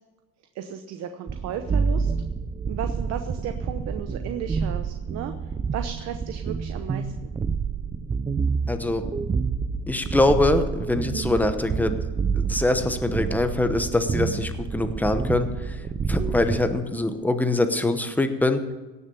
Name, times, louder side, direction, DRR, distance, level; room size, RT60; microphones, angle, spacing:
voice 1, 0.5-2.1 2.7-7.3, right 9 dB, 55° right, 7 dB, 1.0 m, -35 dB
sound 1, 1.3-16.8, right 5 dB, 15° right, 0.5 m, -28 dB
voice 2, 8.7-9.1 9.9-12.0 12.3-15.8 16.1-18.6, left 2 dB, 5° left, 8 dB, 1.0 m, -23 dB
17.0 x 6.8 x 6.9 m, 1.2 s
cardioid pair, 130°, 33 cm